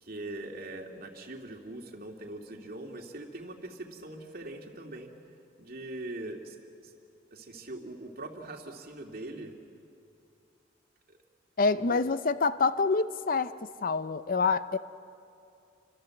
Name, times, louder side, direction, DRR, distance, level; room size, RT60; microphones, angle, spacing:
voice 1, 0.0-5.1 5.6-6.6 6.8-6.9 7.3-9.5 11.1-11.2 11.7-12.0, right 2 dB, 50° right, 2 dB, 2.6 m, -42 dB
voice 2, 11.6-13.5 13.8-14.8, left 4 dB, 45° left, 13 dB, 0.6 m, -26 dB
29.5 x 25.5 x 7.8 m, 2.6 s
head